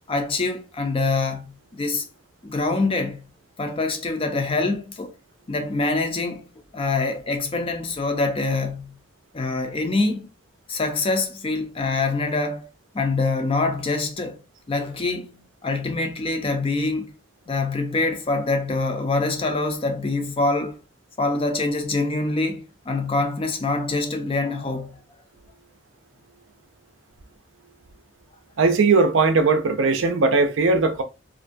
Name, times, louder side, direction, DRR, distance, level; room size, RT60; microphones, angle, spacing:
voice 1, 0.1-2.1 2.4-3.2 3.6-5.1 5.5-6.4 6.7-9.0 9.3-10.3 10.7-12.6 12.9-14.4 14.7-15.3 15.6-17.1 17.5-20.8 21.2-25.0, left 3 dB, 30° left, 0.4 m, -25 dB
voice 2, 28.6-31.0, right 4 dB, 70° right, 0.5 m, -19 dB
2.5 x 2.1 x 2.5 m
head